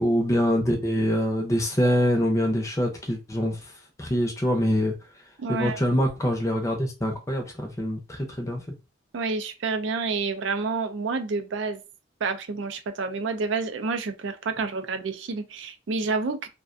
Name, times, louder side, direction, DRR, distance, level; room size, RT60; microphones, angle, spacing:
voice 1, 0.0-3.6 4.0-4.9 5.5-8.6, equal, 15° left, 0.5 m, -24 dB
voice 2, 5.4-5.8 9.1-11.8 12.2-16.5, right 4 dB, 75° right, 0.4 m, -29 dB
2.4 x 2.2 x 2.5 m
head